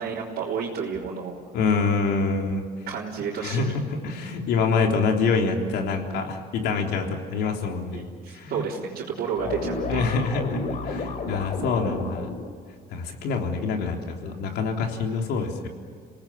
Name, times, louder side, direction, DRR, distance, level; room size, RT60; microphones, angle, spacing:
voice 1, 0.0-1.3 2.9-3.8 7.9-10.0, right 6 dB, 65° right, -6 dB, 3.7 m, -31 dB
voice 2, 1.5-2.6 3.4-8.1 8.3-8.6 9.9-12.3 12.9-15.7, left 4 dB, 80° left, 3 dB, 3.5 m, -26 dB
sound 1, 9.3-12.5, left 3 dB, 50° left, 3.6 m, -32 dB
27.5 x 18.5 x 8.7 m, 2.1 s
cardioid pair, 110°, 17 cm